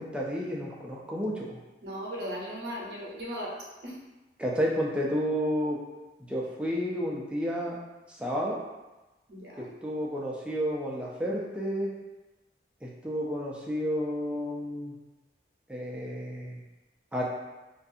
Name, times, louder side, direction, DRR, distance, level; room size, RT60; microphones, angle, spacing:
voice 1, 0.0-1.6 4.4-5.8 6.3-7.8 8.1-8.6 9.8-11.9 12.8-15.0 15.7-16.6 17.1-17.2, equal, 5° right, -4 dB, 0.3 m, -31 dB
voice 2, 1.8-3.5 3.8-4.0 9.3-9.7, equal, 65° right, -5 dB, 0.7 m, -37 dB
2.5 x 2.3 x 2.6 m, 1.1 s
head